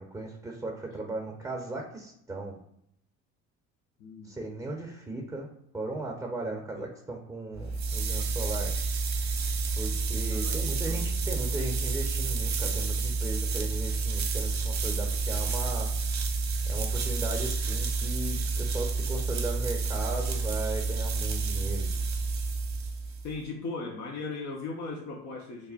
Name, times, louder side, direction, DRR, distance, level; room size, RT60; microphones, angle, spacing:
voice 1, 0.0-2.6 4.2-5.5 5.7-8.7 9.8-15.9 16.7-21.9, right 2 dB, 5° right, 0 dB, 0.8 m, -37 dB
voice 2, 4.0-4.4 6.7-6.8 10.3-11.1 23.2-25.7, left 3 dB, 45° left, -1 dB, 0.7 m, -38 dB
sound 1, 7.5-23.3, right 4 dB, 45° right, 0.8 m, -29 dB
3.2 x 2.1 x 4.1 m, 0.74 s
figure-of-eight pair, 50°, 41 cm